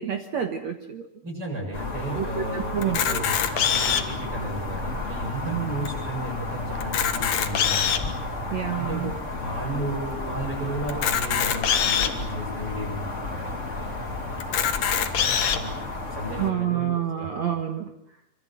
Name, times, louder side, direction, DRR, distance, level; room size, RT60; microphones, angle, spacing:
voice 1, 0.0-1.1 2.2-3.3 5.4-5.7 8.5-9.1 16.4-17.9, right 10 dB, 55° right, 5 dB, 2.2 m, -28 dB
voice 2, 1.2-14.8 15.2-16.9 17.2-17.4, right 1 dB, 35° right, -3 dB, 8.5 m, -34 dB
sound 1, 1.7-16.5, left 2 dB, 20° left, 3.7 m, -32 dB
Camera, 2.8-4.2 4.9-5.0 5.2-5.3 5.9-6.0 6.8-8.1 8.8-8.9 10.9-12.1 12.8-12.9 13.2-13.3 14.4-15.6, left 8 dB, 55° left, 2.3 m, -24 dB
25.5 x 25.5 x 7.9 m, 0.75 s
omnidirectional pair, 4.5 m